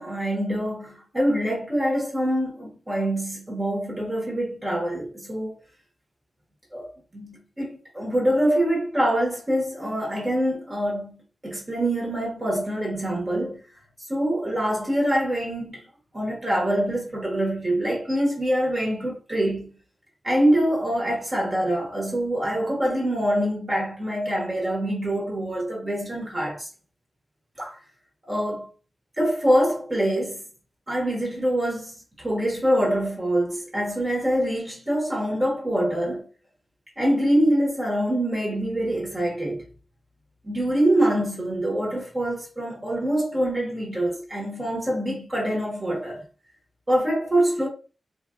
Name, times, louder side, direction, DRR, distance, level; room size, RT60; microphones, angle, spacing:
voice 1, 0.0-5.5 6.7-6.9 7.1-13.6 14.1-15.9 16.1-19.7 20.2-26.7 27.6-27.8 28.3-28.7 29.2-30.4 30.9-36.3 37.0-39.6 40.4-46.2 46.9-47.7, right 1 dB, 20° right, 1.3 m, -25 dB
4.4 x 2.5 x 2.3 m
wide cardioid pair, 180°, 0 cm